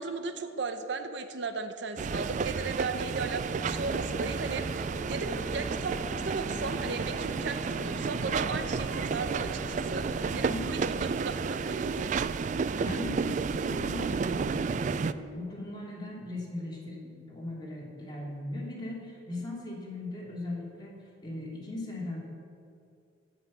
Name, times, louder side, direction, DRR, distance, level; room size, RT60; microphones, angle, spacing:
voice 1, 0.0-12.1, right 4 dB, 70° right, 9 dB, 0.7 m, -36 dB
sound 1, 2.0-15.1, right 5 dB, 40° right, 0.3 m, -32 dB
sound 2, 3.5-10.8, equal, ahead, 1.2 m, -41 dB
voice 2, 10.3-11.2 12.8-22.2, left 2 dB, 25° left, -3 dB, 2.5 m, -39 dB
15.5 x 5.7 x 7.0 m, 2.4 s
head